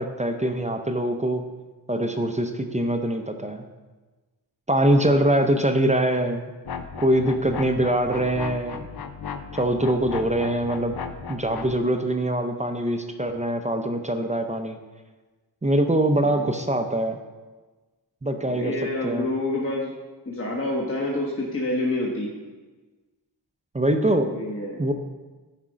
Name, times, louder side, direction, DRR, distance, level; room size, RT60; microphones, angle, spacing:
voice 1, 0.0-1.4 1.9-3.6 4.7-6.5 7.0-8.8 9.5-11.0 11.3-14.8 15.6-17.2 18.2-18.8 19.0-19.3 23.7-24.3 24.8-24.9, right 1 dB, 15° right, 5 dB, 0.5 m, -23 dB
sound 1, 6.6-11.8, left 6 dB, 60° left, 0.6 m, -36 dB
voice 2, 18.3-19.9 20.3-22.3 24.2-24.8, left 2 dB, 30° left, -3 dB, 1.1 m, -28 dB
9.8 x 3.6 x 5.0 m, 1.3 s
wide cardioid pair, 75°, 41 cm